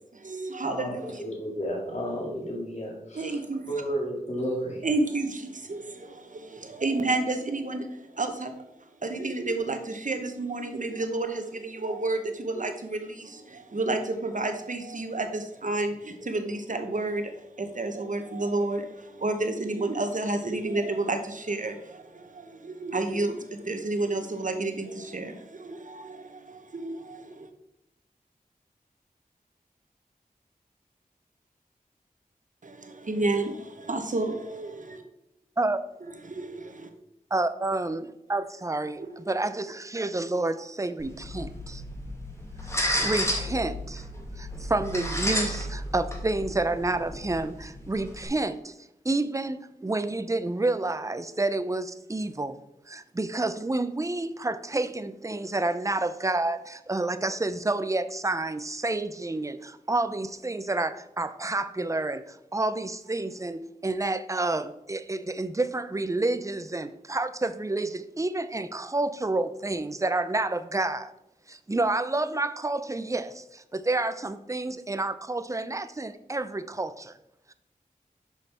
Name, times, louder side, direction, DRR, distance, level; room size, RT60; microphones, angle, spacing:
voice 1, 0.1-1.2 3.1-3.7 4.8-27.5 32.6-35.0 36.0-36.9 39.0-39.2, right 2 dB, 60° right, 1.0 m, -31 dB
voice 2, 0.6-3.4 3.7-4.8, equal, 50° left, 2.1 m, -32 dB
voice 3, 37.3-41.8 42.7-44.0 44.4-48.7 49.0-52.6 52.9-71.1 71.5-77.2, right 2 dB, 20° right, 0.5 m, -29 dB
sound 1, 41.0-48.3, equal, 20° left, 1.7 m, -32 dB
6.3 x 5.2 x 4.3 m
wide cardioid pair, 50°, 15 cm